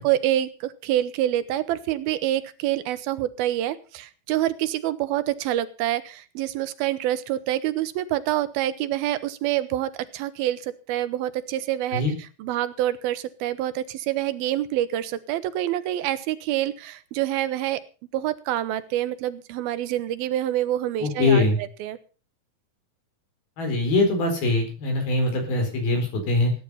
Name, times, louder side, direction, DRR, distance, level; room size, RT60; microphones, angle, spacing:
voice 1, 0.0-12.0 12.4-17.8 18.1-22.0, right 13 dB, 85° right, 14 dB, 2.8 m, -26 dB
voice 2, 21.0-21.6 23.6-26.5, left 2 dB, 85° left, 5 dB, 6.4 m, -22 dB
17.5 x 10.0 x 5.6 m, 0.36 s
omnidirectional pair, 4.2 m